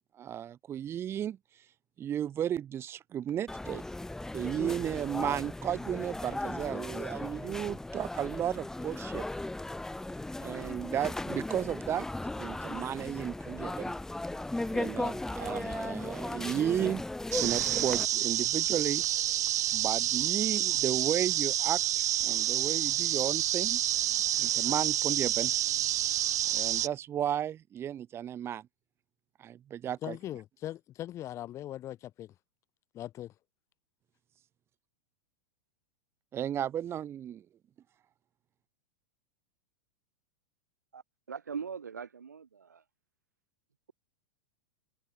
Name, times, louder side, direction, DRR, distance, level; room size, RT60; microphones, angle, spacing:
voice 1, 0.2-1.4 2.0-3.8 4.3-9.2 10.4-12.1 12.4-13.9 14.7-17.0 17.4-19.0 19.7-23.8 24.4-25.5 26.5-28.7 29.4-30.2 36.3-37.4, right 10 dB, 25° right, 0.7 m, -34 dB
sound 1, 3.5-18.1, left 2 dB, 5° left, 0.9 m, -37 dB
sound 2, 17.3-26.9, right 12 dB, 70° right, 0.6 m, -29 dB
voice 2, 30.0-32.3 32.9-33.3, left 13 dB, 30° left, 0.6 m, -40 dB
voice 3, 41.3-42.8, right 6 dB, 90° right, 1.3 m, -40 dB
hypercardioid pair, 100°, 9 cm